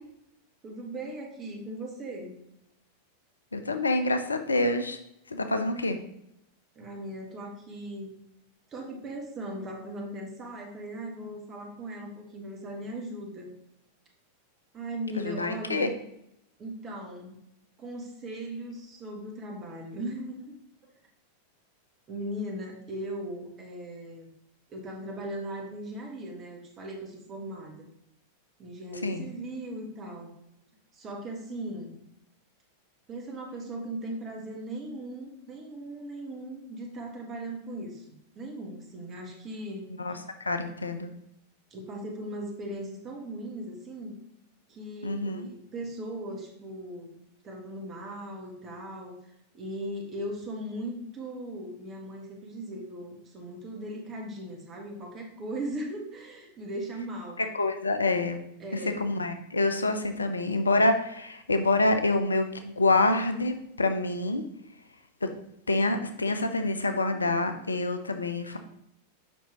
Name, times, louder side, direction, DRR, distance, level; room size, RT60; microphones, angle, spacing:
voice 1, 0.6-2.4 6.7-8.1 8.7-13.5 14.7-15.9 16.6-17.4 17.8-20.5 20.8-20.9 22.1-24.3 24.7-27.9 28.6-30.3 30.9-32.0 33.1-40.2 41.7-44.2 44.7-47.2 47.4-49.2 49.5-57.4 58.6-59.0, right 1 dB, 30° right, 1 dB, 1.6 m, -38 dB
voice 2, 3.5-5.0 5.3-6.0 15.2-15.9 29.0-29.2 40.0-40.1 40.4-41.1 45.0-45.5 57.5-58.4 59.0-64.4 65.2-65.3 65.7-68.6, left 2 dB, 75° left, 8 dB, 0.6 m, -26 dB
7.3 x 5.4 x 3.0 m, 0.78 s
figure-of-eight pair, 90°, 0 cm